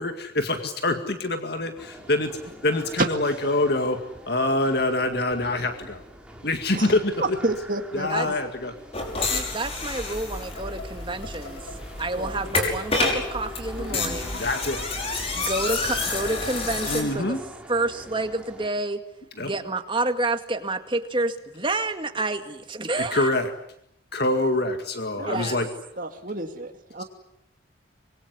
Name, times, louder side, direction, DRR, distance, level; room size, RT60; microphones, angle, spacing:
voice 1, 0.0-2.3 2.6-4.0 4.3-6.0 6.4-7.1 7.9-8.7 9.2-9.5 13.9-14.8 16.8-17.4 19.4-19.5 23.0-23.5 24.1-25.7, left 2 dB, 55° left, 6 dB, 2.1 m, -25 dB
sound 1, 1.8-18.7, right 1 dB, 5° right, 3.8 m, -45 dB
voice 2, 6.7-8.3 12.2-12.4 24.3-24.5 25.2-25.6 26.0-27.0, right 2 dB, 45° right, 4 dB, 2.3 m, -30 dB
sound 2, 8.9-17.0, left 3 dB, 30° left, 5.8 m, -29 dB
voice 3, 9.3-11.6 12.0-14.3 15.3-17.4 17.7-19.0 19.4-23.4 25.3-25.6, right 2 dB, 25° right, 7 dB, 2.1 m, -29 dB
sound 3, 10.3-17.5, left 1 dB, 75° left, 4.6 m, -44 dB
25.5 x 22.5 x 9.6 m, 0.76 s
head